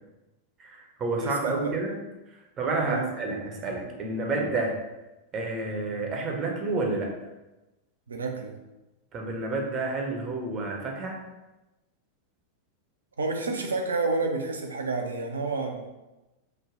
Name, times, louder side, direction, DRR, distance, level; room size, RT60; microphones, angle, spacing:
voice 1, 0.6-2.0 2.6-4.8 5.3-7.1 9.1-11.2, right 3 dB, 30° right, 1 dB, 0.7 m, -29 dB
voice 2, 1.2-1.8 2.8-3.1 8.1-8.5 13.2-15.9, right 3 dB, 70° right, 3 dB, 0.4 m, -30 dB
3.2 x 2.1 x 3.7 m, 1.0 s
figure-of-eight pair, 90°, 0 cm